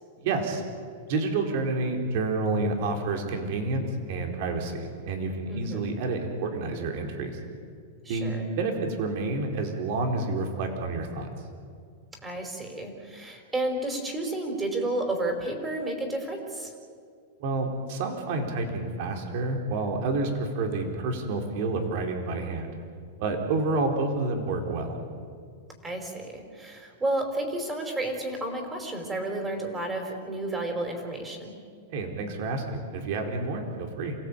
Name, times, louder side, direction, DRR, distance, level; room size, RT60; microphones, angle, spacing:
voice 1, 0.2-0.6 1.1-7.4 8.1-11.3 17.4-22.7 23.2-25.0 31.9-34.2, right 3 dB, 55° right, 3 dB, 4.3 m, -29 dB
voice 2, 5.5-5.9 8.0-8.5 12.2-16.7 25.8-31.5, right 2 dB, 15° right, 4 dB, 5.0 m, -31 dB
28.0 x 17.5 x 8.8 m, 2.2 s
hypercardioid pair, 130°, 0 cm